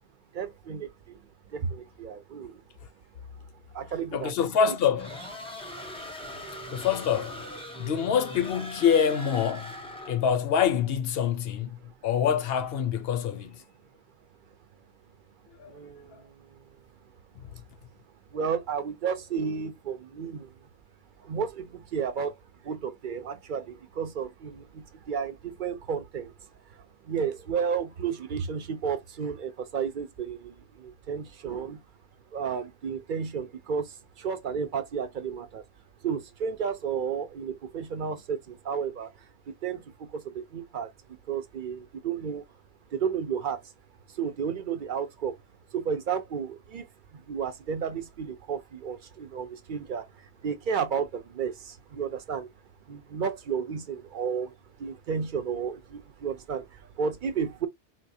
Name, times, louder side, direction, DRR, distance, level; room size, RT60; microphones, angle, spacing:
voice 1, 0.3-1.2 1.5-2.6 3.7-4.3 11.8-11.9 15.7-16.6 18.3-20.5 21.2-26.3 26.7-31.8 32.3-35.6 36.0-40.9 41.3-42.4 42.9-43.7 44.1-45.3 45.7-46.9 47.1-52.5 52.9-54.5 54.8-57.7, right 6 dB, 55° right, 0.6 m, -32 dB
voice 2, 4.1-5.2 6.7-7.5 7.8-9.7 10.1-13.6 15.6-15.7 16.1-16.2 17.4-17.6, left 8 dB, 65° left, 0.8 m, -26 dB
sound 1, 5.0-10.3, equal, 5° left, 0.5 m, -40 dB
3.9 x 2.4 x 2.6 m
omnidirectional pair, 1.1 m